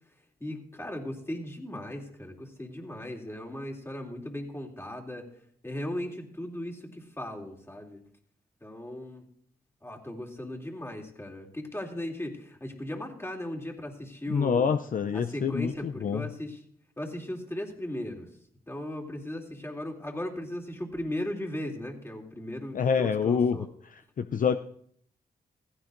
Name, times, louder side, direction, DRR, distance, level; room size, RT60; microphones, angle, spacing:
voice 1, 0.4-5.2 5.6-8.0 8.6-9.2 9.8-14.7 15.1-16.6 17.0-18.3 18.7-23.7, left 1 dB, 15° left, 0 dB, 2.8 m, -37 dB
voice 2, 14.3-16.3 22.7-23.6 24.2-24.6, left 6 dB, 55° left, 9 dB, 0.5 m, -26 dB
15.5 x 15.0 x 2.6 m, 0.65 s
cardioid pair, 65°, 17 cm